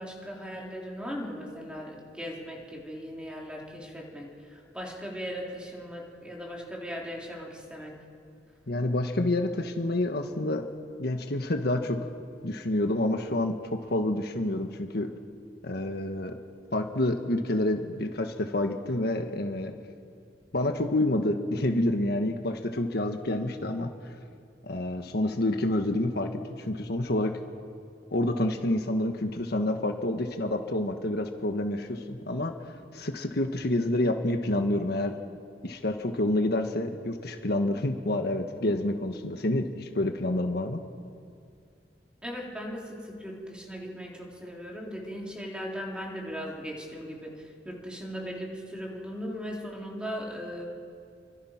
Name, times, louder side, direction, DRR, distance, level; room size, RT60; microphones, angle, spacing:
voice 1, 0.0-8.0 42.2-50.7, equal, 5° right, -2 dB, 3.9 m, -38 dB
voice 2, 8.7-10.7 11.0-12.0 12.4-15.1 15.6-16.4 16.7-19.7 20.5-23.9 24.6-26.3 26.6-27.4 28.1-32.5 32.9-35.1 35.6-40.8, left 1 dB, 65° left, 5 dB, 1.5 m, -28 dB
30.0 x 24.5 x 5.9 m, 2.3 s
head